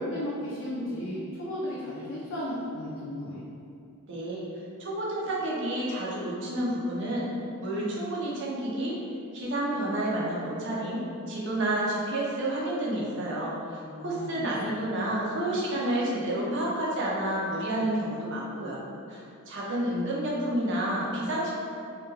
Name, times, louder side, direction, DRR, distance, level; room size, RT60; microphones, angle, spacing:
voice 1, 0.0-3.4 13.8-14.4, left 1 dB, 55° left, -7 dB, 0.4 m, -34 dB
voice 2, 4.1-4.4 4.8-7.3 7.6-9.0 9.3-13.5 14.0-18.8 19.1-21.5, right 1 dB, 55° right, -5 dB, 0.5 m, -30 dB
2.2 x 2.2 x 3.0 m, 2.5 s
head